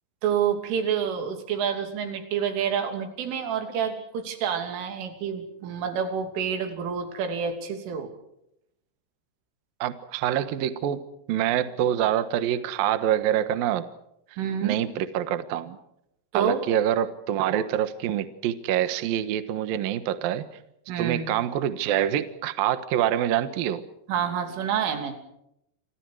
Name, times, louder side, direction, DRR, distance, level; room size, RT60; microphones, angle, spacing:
voice 1, 0.2-8.1 14.4-14.8 16.3-16.6 20.9-21.4 24.1-25.1, right 7 dB, 80° right, 6 dB, 5.5 m, -28 dB
voice 2, 9.8-13.9 14.6-15.8 16.3-20.5 21.0-23.9, right 11 dB, 65° right, 11 dB, 2.5 m, -26 dB
29.0 x 26.5 x 4.8 m, 0.79 s
omnidirectional pair, 5.6 m